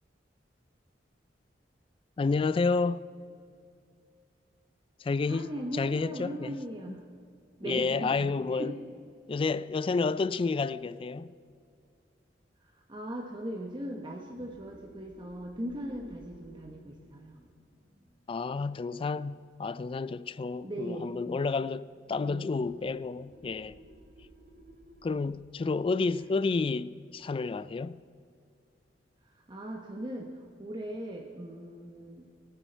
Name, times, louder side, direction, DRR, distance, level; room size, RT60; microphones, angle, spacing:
voice 1, 2.2-3.0 5.0-5.5 5.7-6.6 7.6-8.7 9.3-11.3 18.3-23.8 25.0-28.0, left 4 dB, 30° left, 0.3 m, -30 dB
voice 2, 5.2-7.0 7.6-8.8 12.6-17.4 20.6-21.2 22.1-22.6 29.2-32.3, right 1 dB, 25° right, 0.9 m, -39 dB
sound 1, 14.1-19.4 22.5-27.8, equal, 55° right, 1.9 m, -57 dB
22.5 x 9.0 x 4.5 m
head